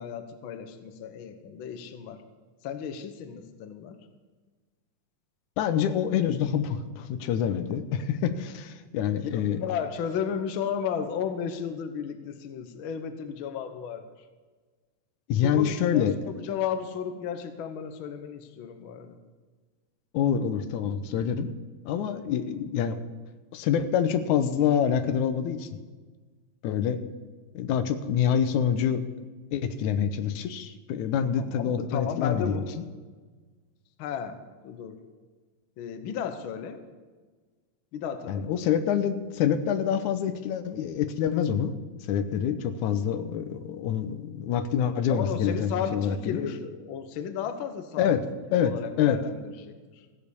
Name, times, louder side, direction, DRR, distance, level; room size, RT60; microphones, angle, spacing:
voice 1, 0.0-2.2 2.6-4.0 9.1-14.0 15.4-16.1 16.4-19.2 31.4-32.7 34.0-34.4 34.6-35.0 35.8-36.8 37.9-38.6 44.9-48.2 48.5-50.1, left 7 dB, 65° left, 8 dB, 1.4 m, -34 dB
voice 2, 5.6-9.6 15.3-16.7 20.1-21.5 21.9-23.0 23.5-25.8 26.6-27.0 27.5-29.0 29.5-32.8 38.3-46.6 48.0-48.2 48.5-49.2, left 8 dB, 85° left, 11 dB, 2.2 m, -26 dB
15.5 x 7.5 x 6.9 m, 1.4 s
omnidirectional pair, 3.3 m